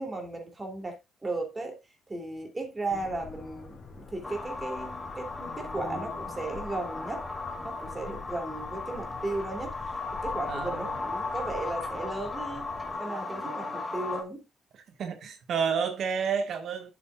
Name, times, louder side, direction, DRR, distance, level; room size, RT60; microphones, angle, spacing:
voice 1, 0.0-1.8 2.1-7.2 7.6-12.7 13.0-14.4, right 2 dB, 20° right, 3.2 m, -36 dB
sound 1, 2.9-13.0, left 4 dB, 40° left, 3.4 m, -46 dB
sound 2, 4.2-14.2, left 3 dB, 15° left, 1.9 m, -36 dB
voice 2, 10.5-11.0 13.4-13.8 14.7-16.9, right 6 dB, 65° right, 1.7 m, -31 dB
11.0 x 7.1 x 2.5 m
cardioid pair, 90°, 0 cm